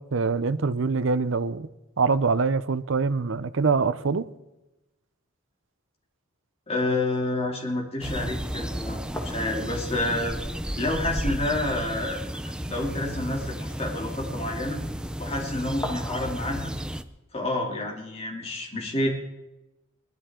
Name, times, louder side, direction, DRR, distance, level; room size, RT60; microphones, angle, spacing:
voice 1, 0.0-1.7 2.0-4.3, right 4 dB, 65° right, 0.6 m, -24 dB
voice 2, 6.7-10.4 10.8-12.3 12.7-14.8 15.2-16.7 17.3-19.1, left 2 dB, 30° left, 2.9 m, -29 dB
sound 1, 8.0-17.0, equal, 5° right, 0.5 m, -33 dB
sound 2, 9.1-11.4 11.7-11.8 12.1-12.4 15.8-16.9, left 1 dB, 15° left, 1.7 m, -39 dB
21.0 x 12.0 x 3.8 m
head